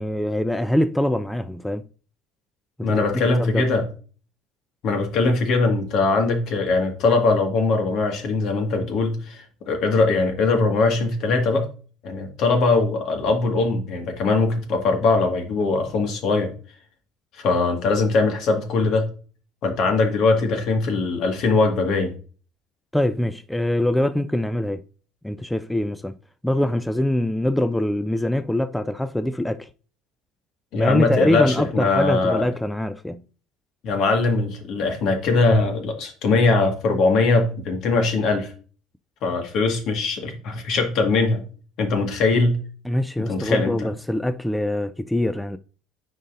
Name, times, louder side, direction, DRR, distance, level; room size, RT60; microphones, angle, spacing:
voice 1, 0.0-1.8 2.8-3.0 3.4-3.6 22.9-24.8 25.2-26.2 26.4-29.7 30.8-33.2 42.9-45.6, left 1 dB, 5° left, 0.4 m, -23 dB
voice 2, 2.8-3.8 4.8-11.7 12.0-16.5 17.4-19.1 19.6-22.1 30.7-32.4 33.8-38.5 39.2-41.4 41.8-42.6 43.2-43.9, left 3 dB, 60° left, 1.8 m, -21 dB
9.9 x 4.0 x 2.6 m
hypercardioid pair, 65°, 0 cm